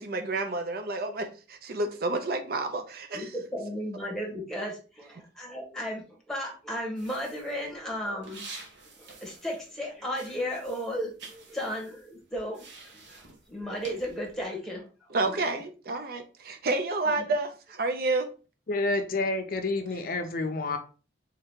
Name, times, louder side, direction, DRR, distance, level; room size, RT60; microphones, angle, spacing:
voice 1, 0.0-3.3 15.1-18.3, right 2 dB, 50° right, 0.5 m, -30 dB
voice 2, 3.1-8.4 9.0-14.8 15.2-15.4 17.0-17.2, equal, ahead, 1.1 m, -35 dB
sound 1, 7.0-9.8 10.1-14.4, right 4 dB, 75° right, 1.0 m, -49 dB
voice 3, 18.7-20.8, left 2 dB, 50° left, 0.5 m, -29 dB
3.5 x 2.8 x 3.5 m
head